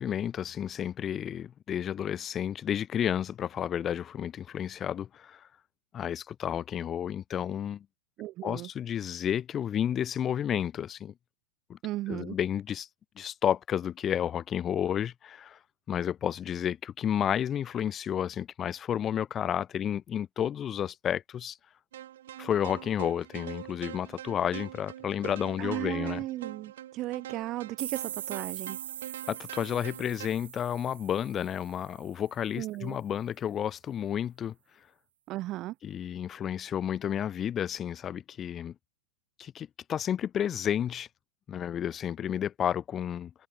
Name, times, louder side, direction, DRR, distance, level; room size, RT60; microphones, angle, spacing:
voice 1, 0.0-5.5 5.9-7.9 8.4-11.1 11.7-11.8 12.1-12.9 13.2-15.6 15.9-21.6 22.4-26.2 29.3-34.5 35.8-38.7 39.4-41.1 41.5-43.5, left 9 dB, 15° left, 0.5 m, -31 dB
voice 2, 8.2-8.7 11.8-12.4 25.6-28.8 32.6-33.0 35.3-35.7, right 16 dB, 25° right, 0.7 m, -35 dB
sound 1, 21.9-30.3, right 12 dB, 65° right, 1.6 m, -44 dB
sound 2, 27.8-32.4, right 10 dB, 85° right, 2.6 m, -42 dB
supercardioid pair, 180°, 0 cm